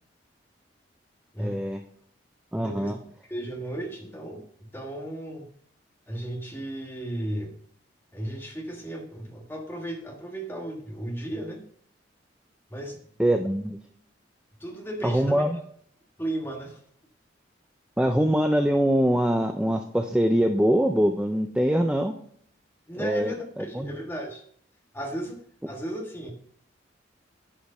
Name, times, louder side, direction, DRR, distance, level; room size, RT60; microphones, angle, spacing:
voice 1, 1.4-1.8 2.5-3.0 13.2-13.8 15.0-15.6 18.0-22.1 23.0-23.3 23.7-24.0, equal, 5° right, 5 dB, 0.4 m, -23 dB
voice 2, 2.5-2.9 3.3-4.4 4.7-5.5 6.1-7.5 8.1-11.6 12.7-13.0 14.6-15.4 16.2-16.8 22.9-24.4 24.9-25.4 25.7-26.3, right 1 dB, 10° left, 1 dB, 1.5 m, -35 dB
10.5 x 5.0 x 5.5 m, 0.63 s
head